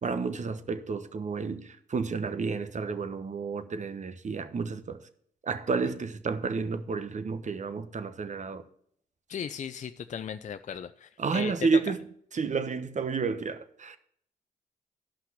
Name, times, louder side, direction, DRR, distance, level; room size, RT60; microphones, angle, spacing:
voice 1, 0.0-5.0 5.5-8.6 11.2-12.0 12.3-14.0, right 4 dB, 40° right, 1.0 m, -31 dB
voice 2, 9.3-11.5, left 8 dB, 45° left, 0.5 m, -37 dB
11.5 x 5.7 x 6.0 m
supercardioid pair, 50°, 18 cm